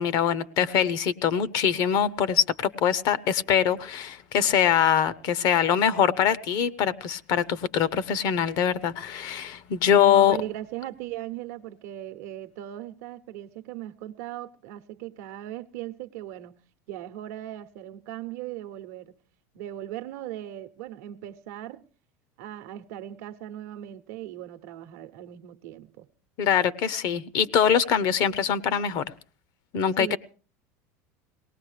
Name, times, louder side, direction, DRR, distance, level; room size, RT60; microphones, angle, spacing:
voice 1, 0.0-10.4 26.4-29.1 29.7-30.2, left 8 dB, 55° left, 0.7 m, -23 dB
voice 2, 10.0-16.6 16.9-19.2 19.5-21.8 22.4-26.1 30.0-30.2, right 13 dB, 75° right, 0.8 m, -38 dB
22.5 x 18.5 x 3.3 m
supercardioid pair, 125°, 8 cm